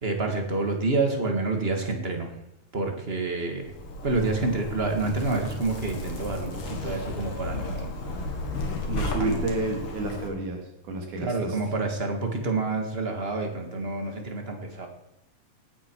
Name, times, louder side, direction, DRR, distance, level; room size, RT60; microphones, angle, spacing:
voice 1, 0.0-2.4 2.7-3.7 4.0-7.9 8.3-8.4 9.2-9.4 11.2-14.9, right 3 dB, 25° right, 3 dB, 1.7 m, -28 dB
Zipper (clothing), 3.6-10.3, left 2 dB, 50° left, 2.7 m, -34 dB
voice 2, 8.9-10.6 10.9-11.6, right 2 dB, 85° right, 2 dB, 4.2 m, -30 dB
18.0 x 9.7 x 4.7 m, 0.83 s
omnidirectional pair, 3.4 m